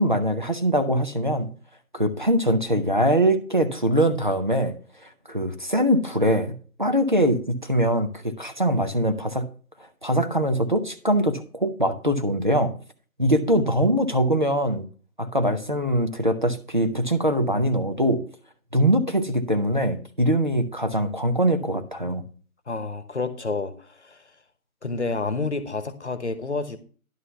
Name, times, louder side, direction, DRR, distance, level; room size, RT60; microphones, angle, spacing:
voice 1, 0.0-1.5 1.9-4.8 5.0-9.5 10.0-12.7 13.2-14.9 15.2-18.2 18.7-22.2, equal, 35° right, 6 dB, 0.7 m, -22 dB
voice 2, 22.7-24.2 24.8-26.8, left 3 dB, 50° left, 12 dB, 1.1 m, -29 dB
11.0 x 4.0 x 6.6 m, 0.41 s
figure-of-eight pair, 165°, 43 cm